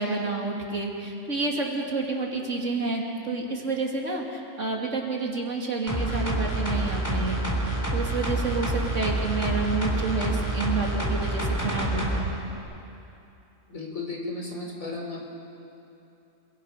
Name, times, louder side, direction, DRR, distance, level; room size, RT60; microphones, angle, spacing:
voice 1, 0.0-12.3, right 3 dB, 55° right, 0 dB, 3.1 m, -29 dB
sound 1, 5.9-12.2 12.6-12.7, right 1 dB, 10° left, 3.7 m, -27 dB
voice 2, 13.7-15.3, left 3 dB, 65° left, 0 dB, 4.3 m, -34 dB
28.5 x 22.0 x 5.8 m, 2.8 s
omnidirectional pair, 1.5 m